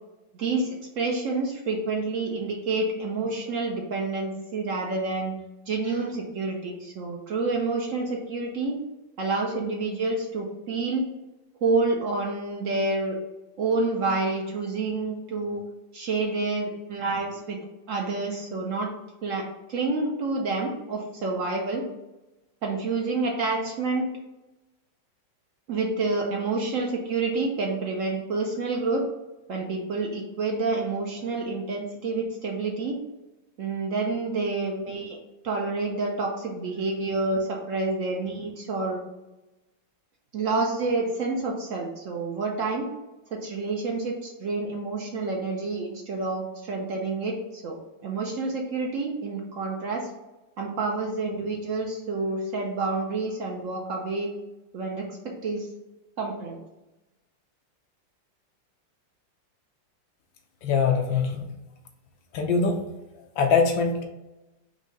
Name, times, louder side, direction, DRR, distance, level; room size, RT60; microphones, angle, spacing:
voice 1, 0.3-5.3 5.7-8.8 9.2-11.1 11.6-13.2 13.6-15.6 15.9-17.6 17.9-18.9 19.2-21.8 22.6-24.1 25.7-29.0 29.5-33.0 33.6-35.2 35.4-39.0 40.3-42.9 43.3-50.1 50.6-54.3 54.7-55.7 56.2-56.6, right 3 dB, 70° right, 0 dB, 0.7 m, -28 dB
voice 2, 60.6-61.5 62.3-62.8 63.4-64.0, left 5 dB, 80° left, 4 dB, 1.4 m, -23 dB
4.8 x 2.7 x 3.9 m, 1.0 s
omnidirectional pair, 2.1 m